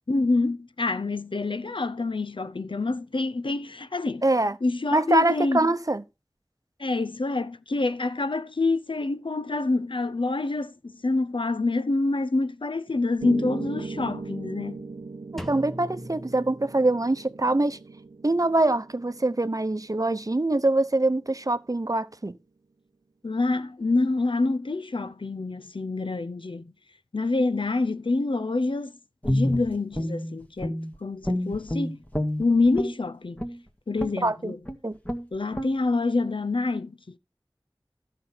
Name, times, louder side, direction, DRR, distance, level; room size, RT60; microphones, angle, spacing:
voice 1, 0.1-4.3 4.6-5.7 6.8-14.8 23.2-26.7 27.1-29.0 29.2-32.0 32.4-33.5 33.9-34.6 35.3-37.2, left 3 dB, 75° left, 0.7 m, -27 dB
voice 2, 4.2-4.5 4.9-6.0 15.3-17.8 18.2-22.4 34.2-34.5 34.8-34.9, right 2 dB, 40° right, 0.8 m, -24 dB
Piano, 13.2-21.3, right 3 dB, 90° right, 0.6 m, -39 dB
Drum, 15.4-17.3, equal, ahead, 1.2 m, -41 dB
Guitar, 29.2-31.0 31.2-33.0 33.4-33.6 34.0-34.3 34.6-34.8 35.0-35.3 35.5-35.7, left 1 dB, 20° left, 2.0 m, -28 dB
12.5 x 6.3 x 5.6 m
wide cardioid pair, 40°, 9 cm